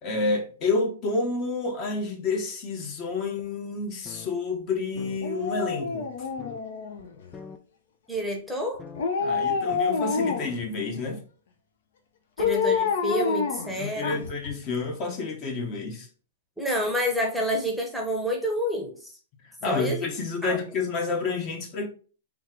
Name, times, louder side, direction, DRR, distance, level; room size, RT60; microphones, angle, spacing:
voice 1, 0.0-6.1 9.2-11.2 13.8-16.1 19.6-21.9, left 3 dB, 35° left, 0.9 m, -29 dB
sound 1, 3.4-3.5 3.9-4.3 4.6-4.7 5.0-5.2 5.8-5.9 6.4-6.6 7.0-7.1 7.3-7.6 8.2-8.3 8.8-9.0 9.7-9.8, left 6 dB, 20° left, 0.4 m, -43 dB
Dog, 5.2-7.3 8.9-10.6 12.4-14.5 14.8-14.9, left 5 dB, 70° left, 0.7 m, -27 dB
voice 2, 8.1-8.8 12.4-14.3 16.6-19.1 19.6-20.1 20.4-20.6, equal, ahead, 0.8 m, -28 dB
3.6 x 2.4 x 4.4 m
hypercardioid pair, 130°, 0 cm